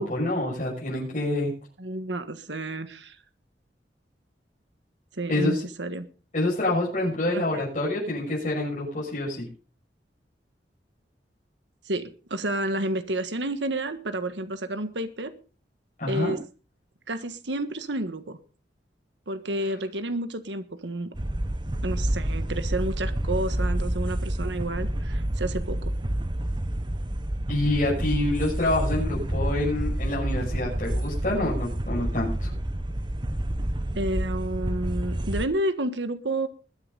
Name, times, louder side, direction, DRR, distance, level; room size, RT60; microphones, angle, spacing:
voice 1, 0.0-1.5 5.3-5.6 6.3-9.5 16.0-16.3 27.5-32.5, left 1 dB, 45° left, -6 dB, 6.5 m, -27 dB
voice 2, 1.8-3.2 5.2-6.0 7.3-7.6 11.9-15.3 16.1-16.4 17.1-18.4 19.3-21.1 21.8-25.9 33.9-36.5, right 1 dB, 90° right, 10 dB, 1.5 m, -30 dB
sound 1, 21.1-35.5, right 1 dB, 25° right, 1.1 m, -28 dB
21.5 x 9.9 x 4.0 m, 0.35 s
head